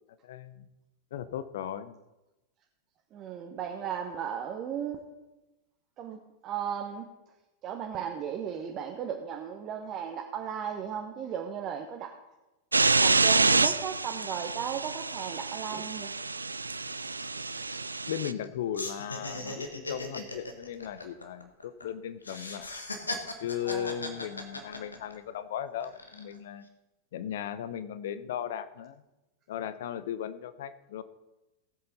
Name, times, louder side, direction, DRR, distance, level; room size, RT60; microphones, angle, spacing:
voice 1, 0.2-0.6 1.1-2.0 18.1-22.7 23.4-26.6 27.1-29.0 29.5-31.0, left 9 dB, 55° left, 14 dB, 0.7 m, -37 dB
voice 2, 3.1-5.0 6.0-7.1 7.6-12.2 12.9-16.1 19.4-19.6 23.6-24.0, right 8 dB, 35° right, 3 dB, 1.0 m, -36 dB
sound 1, 12.7-18.3, right 3 dB, 80° right, 0.3 m, -27 dB
sound 2, 16.0-16.1 16.3-16.5 16.9-18.5 18.7-21.8 22.2-25.3 25.8-26.4, left 2 dB, 80° left, 1.4 m, -38 dB
18.0 x 7.8 x 4.1 m, 1.0 s
figure-of-eight pair, 90°, 0 cm